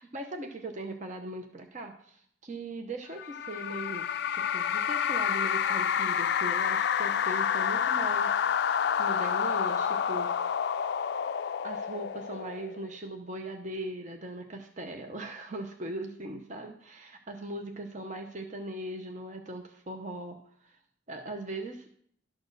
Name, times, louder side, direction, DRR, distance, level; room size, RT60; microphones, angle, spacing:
voice 1, 0.0-8.4 9.0-10.4 11.6-20.4 20.6-20.8 21.1-21.9, right 1 dB, 35° right, 4 dB, 0.8 m, -39 dB
sound 1, 3.2-12.9, left 8 dB, 55° left, 0.3 m, -29 dB
12.0 x 4.3 x 6.6 m, 0.63 s
head